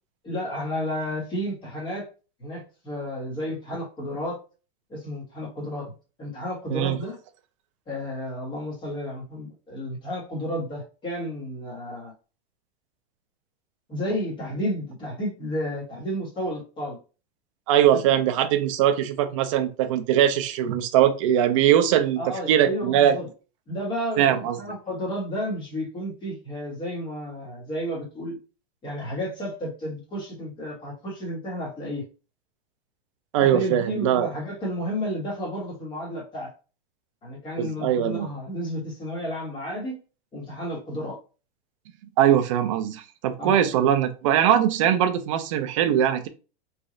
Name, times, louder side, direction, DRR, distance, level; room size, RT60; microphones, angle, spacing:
voice 1, 0.2-2.1 2.4-4.4 4.9-5.9 6.2-7.2 7.9-12.1 13.9-17.0 17.8-18.0 22.2-23.3 23.7-28.3 28.8-32.0 33.5-36.5 37.2-40.0 40.3-41.2 43.4-43.6, equal, 15° left, -2 dB, 1.2 m, -32 dB
voice 2, 17.7-22.2 22.5-23.2 24.2-24.6 33.3-34.3 37.6-38.3 42.2-46.3, right 10 dB, 30° right, 8 dB, 0.4 m, -21 dB
3.2 x 2.4 x 3.7 m, 0.33 s
supercardioid pair, 165°, 32 cm